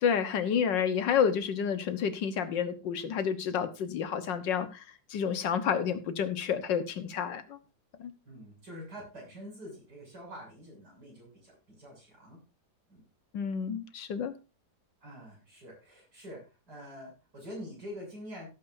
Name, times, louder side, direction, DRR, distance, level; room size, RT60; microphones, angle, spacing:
voice 1, 0.0-4.8 5.1-7.6 8.0-8.1 13.3-14.3, left 7 dB, 85° left, 1.8 m, -30 dB
voice 2, 8.2-12.4 12.9-13.0 15.0-18.5, equal, 60° right, 7.9 m, -46 dB
16.5 x 8.9 x 2.6 m
omnidirectional pair, 1.9 m